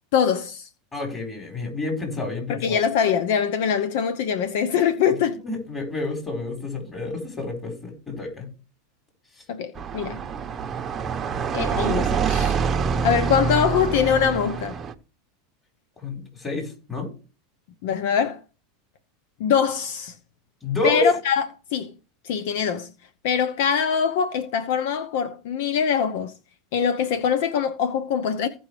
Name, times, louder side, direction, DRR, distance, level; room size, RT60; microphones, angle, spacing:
voice 1, 0.1-0.7 2.5-5.4 9.5-10.2 11.5-12.6 13.0-14.8 17.8-18.4 19.4-20.1 20.8-21.5 21.7-21.9 22.2-22.9 23.2-26.3 26.7-28.5, left 7 dB, 70° left, 0.8 m, -23 dB
voice 2, 0.9-2.8 5.4-8.5 16.0-17.1 20.6-21.1, left 2 dB, 20° left, 4.6 m, -29 dB
sound 1, 9.8-14.9, right 6 dB, 25° right, 0.8 m, -26 dB
16.0 x 5.5 x 3.3 m
supercardioid pair, 130°, 0 cm